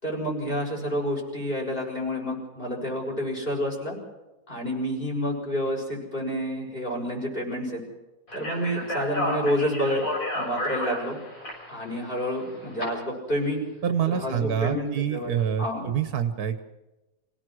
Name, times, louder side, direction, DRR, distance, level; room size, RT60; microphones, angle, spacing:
voice 1, 0.0-4.0 4.5-7.8 8.3-10.0 10.3-11.2 11.7-13.6 14.1-15.3 15.6-15.9, equal, 35° left, -2 dB, 6.7 m, -29 dB
Speech, 8.3-12.8, left 1 dB, 65° left, 7.2 m, -32 dB
voice 2, 13.8-16.6, right 8 dB, 85° right, 8 dB, 1.6 m, -26 dB
27.0 x 17.5 x 6.3 m, 1.0 s
omnidirectional pair, 1.6 m